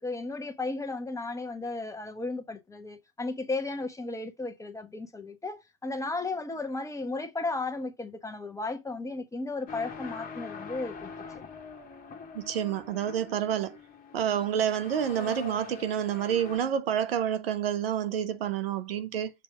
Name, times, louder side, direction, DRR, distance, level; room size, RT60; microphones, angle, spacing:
voice 1, 0.0-11.1, left 3 dB, 10° left, 1.1 m, -34 dB
sound 1, 9.7-16.6, left 5 dB, 30° left, 1.7 m, -43 dB
voice 2, 12.3-13.8 14.1-19.3, right 9 dB, 75° right, 0.9 m, -29 dB
7.1 x 3.3 x 4.9 m
hypercardioid pair, 95°, 29 cm